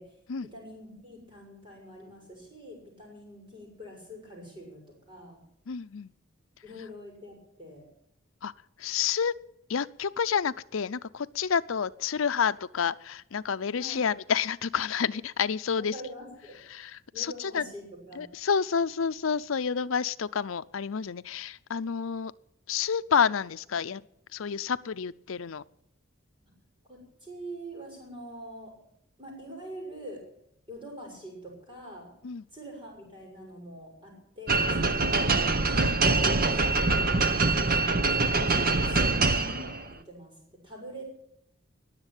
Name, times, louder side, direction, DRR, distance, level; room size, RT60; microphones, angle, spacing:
voice 1, 0.4-4.8 5.1-5.4 6.6-7.8 13.7-14.0 15.8-16.6 17.1-18.3 26.9-28.7 29.2-30.2 30.7-32.1 32.5-37.1 38.0-41.2, right 1 dB, 25° right, 0 dB, 6.7 m, -44 dB
voice 2, 5.7-6.1 8.4-8.5 8.8-9.3 9.7-15.9 16.7-17.6 18.2-22.3 22.7-24.0 24.3-25.6 32.2-32.4 34.8-34.9, left 6 dB, 85° left, 14 dB, 0.6 m, -29 dB
sound 1, 34.5-39.9, right 3 dB, 45° right, 1.0 m, -24 dB
20.5 x 7.4 x 9.0 m, 0.76 s
head